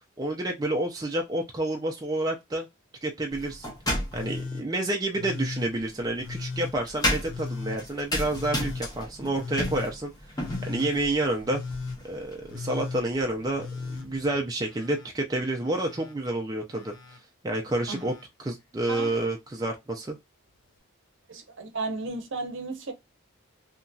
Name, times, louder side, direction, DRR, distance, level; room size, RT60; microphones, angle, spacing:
voice 1, 0.2-2.7 3.0-3.7 4.1-10.1 10.6-11.6 12.0-16.9 17.4-18.1 18.4-20.2, right 1 dB, 15° right, 0.3 m, -29 dB
sound 1, 3.3-4.5 5.6-14.3, left 1 dB, 15° left, 0.7 m, -34 dB
Telephone, 4.1-4.7 5.1-5.7 6.2-6.7 7.3-7.8 8.3-8.8 9.3-9.9 10.4-10.9 11.4-12.0 12.5-13.0 13.5-15.1 15.4-16.1 16.7-17.2 17.7-18.2 18.8-19.3 20.5-20.6, left 4 dB, 60° left, 0.7 m, -37 dB
voice 2, 21.3-22.9, right 3 dB, 55° right, 0.7 m, -34 dB
2.8 x 2.7 x 2.2 m
head